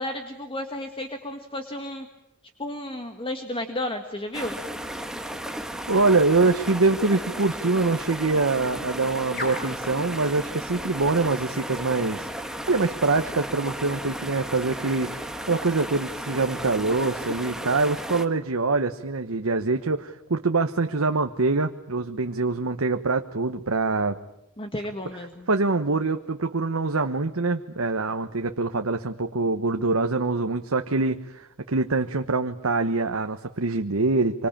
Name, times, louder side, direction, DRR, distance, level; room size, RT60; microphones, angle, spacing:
voice 1, 0.0-2.1 2.6-4.6 24.6-25.5, left 1 dB, 25° left, 6 dB, 1.7 m, -32 dB
sound 1, 4.3-18.3, right 1 dB, 5° right, 1.5 m, -34 dB
sound 2, 4.4-17.8, left 2 dB, 45° left, 6.0 m, -45 dB
voice 2, 5.9-12.3 12.7-24.2 25.5-34.5, right 3 dB, 75° right, 6 dB, 1.1 m, -24 dB
26.5 x 25.5 x 8.8 m, 0.83 s
head